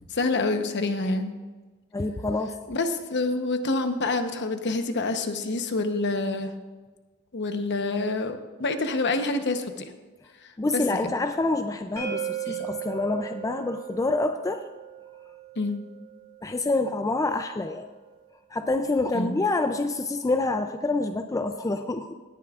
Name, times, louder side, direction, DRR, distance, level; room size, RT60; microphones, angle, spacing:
voice 1, 0.1-1.3 2.7-6.5 7.3-9.9 10.7-11.1 12.5-12.7 15.6-15.8 19.1-19.4, left 3 dB, 55° left, 7 dB, 0.9 m, -27 dB
voice 2, 1.9-2.5 10.6-14.6 16.4-17.9 18.5-22.1, left 2 dB, 15° left, 7 dB, 0.4 m, -27 dB
sound 1, 12.0-17.8, right 10 dB, 85° right, 2.2 m, -38 dB
18.0 x 10.5 x 2.4 m, 1.3 s
head